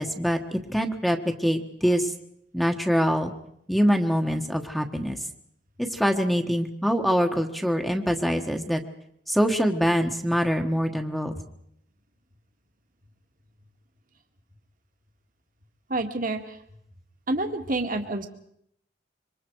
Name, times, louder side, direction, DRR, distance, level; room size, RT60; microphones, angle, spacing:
voice 1, 0.0-2.1 2.5-3.3 3.7-5.2 5.8-8.8 9.3-11.3, equal, ahead, 4 dB, 1.4 m, -24 dB
voice 2, 15.9-16.6 17.3-18.3, right 2 dB, 50° right, 5 dB, 1.9 m, -28 dB
27.0 x 24.0 x 4.7 m, 0.74 s
head